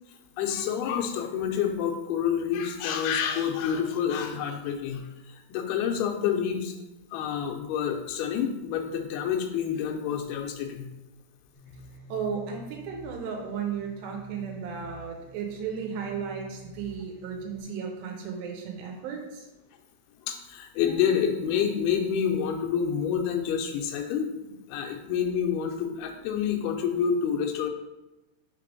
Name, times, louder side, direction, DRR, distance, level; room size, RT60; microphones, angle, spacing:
voice 1, 0.4-6.8 7.1-10.9 20.2-27.7, left 8 dB, 80° left, 3 dB, 2.4 m, -28 dB
sound 1, 11.5-17.6, left 1 dB, 40° right, 1.3 m, -48 dB
voice 2, 12.1-19.5, right 6 dB, 90° right, 1 dB, 3.2 m, -34 dB
6.6 x 3.5 x 5.2 m, 1.0 s
omnidirectional pair, 4.8 m